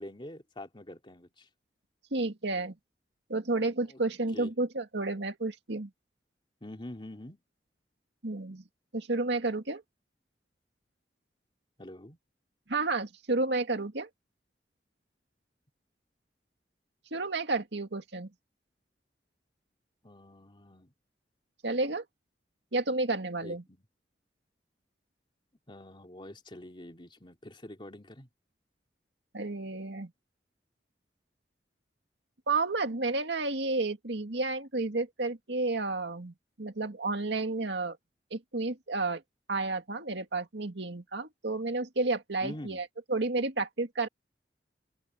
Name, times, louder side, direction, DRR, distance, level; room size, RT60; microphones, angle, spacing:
voice 1, 0.0-1.5 3.9-4.0 4.3-4.5 6.6-7.4 11.8-12.2 20.0-20.9 23.4-23.8 25.7-28.3 42.4-42.8, left 1 dB, 30° left, 3.1 m, -45 dB
voice 2, 2.1-2.8 3.3-5.9 8.2-8.6 8.9-9.8 12.7-14.1 17.1-18.3 21.6-22.0 22.7-23.6 29.3-30.1 32.5-38.0 38.3-39.2 39.5-44.1, right 3 dB, 80° right, 2.1 m, -31 dB
open air
head